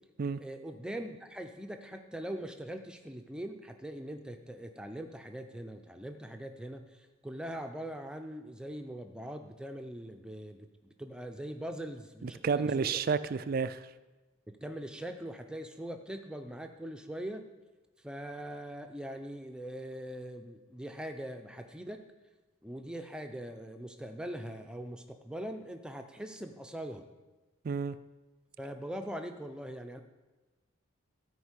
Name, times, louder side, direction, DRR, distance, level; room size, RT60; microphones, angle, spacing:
voice 1, 0.4-12.9 14.5-17.4 18.0-22.0 22.6-27.0 28.6-30.0, right 1 dB, 5° right, 5 dB, 0.6 m, -42 dB
voice 2, 12.2-13.9 27.6-28.0, right 5 dB, 45° right, 14 dB, 0.3 m, -31 dB
13.0 x 5.3 x 8.2 m, 1.2 s
head